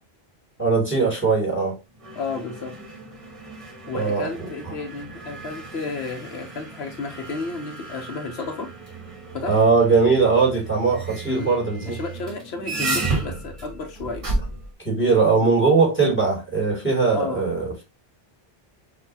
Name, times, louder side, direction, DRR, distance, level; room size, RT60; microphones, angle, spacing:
voice 1, 0.6-1.8 3.9-4.5 9.5-12.0 14.8-17.8, right 4 dB, 10° left, 2.5 m, -20 dB
sound 1, 1.9-14.7, right 3 dB, 35° right, 1.2 m, -33 dB
voice 2, 2.1-2.7 3.9-8.7 9.3-9.6 11.3-11.5 11.9-14.3 15.3-15.5 17.1-17.4, left 4 dB, 80° left, 1.1 m, -32 dB
6.6 x 2.6 x 2.8 m
omnidirectional pair, 1.1 m